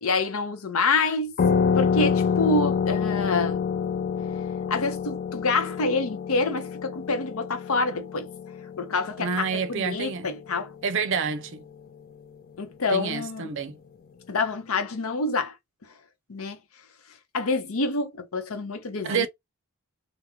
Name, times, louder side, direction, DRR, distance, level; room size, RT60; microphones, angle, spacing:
voice 1, 0.0-1.3 1.7-3.6 4.7-8.3 8.8-10.7 12.6-13.5 14.3-15.5 16.3-16.6 17.3-19.3, left 3 dB, 85° left, 0.8 m, -27 dB
sound 1, 1.4-10.6, left 6 dB, 45° left, 0.3 m, -27 dB
voice 2, 9.2-10.3 10.8-11.6 12.9-13.8 19.0-19.3, right 5 dB, 60° right, 0.5 m, -28 dB
3.0 x 2.0 x 3.6 m
head